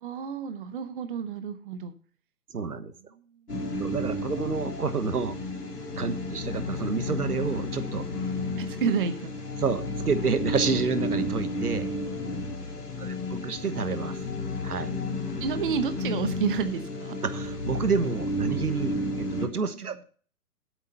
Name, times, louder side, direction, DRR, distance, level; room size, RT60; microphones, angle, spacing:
voice 1, 0.0-1.9 6.1-6.4 8.6-9.3 12.8-13.5 15.4-17.2 19.8-19.9, right 6 dB, 35° right, 10 dB, 0.9 m, -31 dB
voice 2, 2.5-2.9 3.8-5.4 6.0-8.1 9.6-11.9 13.0-14.2 14.6-14.9 17.2-20.0, right 5 dB, 75° right, 12 dB, 1.3 m, -29 dB
sound 1, 3.5-19.5, left 2 dB, 85° left, 3.3 m, -32 dB
8.2 x 7.5 x 5.6 m, 0.41 s
figure-of-eight pair, 130°, 45 cm